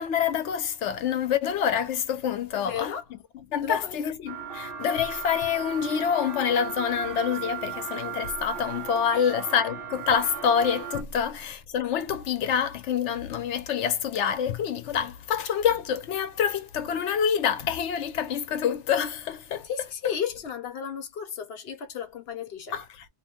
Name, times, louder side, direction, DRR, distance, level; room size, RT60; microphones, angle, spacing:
voice 1, 0.0-2.9 3.5-19.7 22.7-23.0, left 8 dB, 85° left, 1.0 m, -27 dB
voice 2, 2.5-3.0 3.6-4.0 9.1-9.3 19.6-22.7, left 8 dB, 65° left, 0.9 m, -34 dB
sound 1, 4.3-11.0, right 8 dB, 55° right, 1.1 m, -36 dB
2.8 x 2.1 x 2.8 m
omnidirectional pair, 1.2 m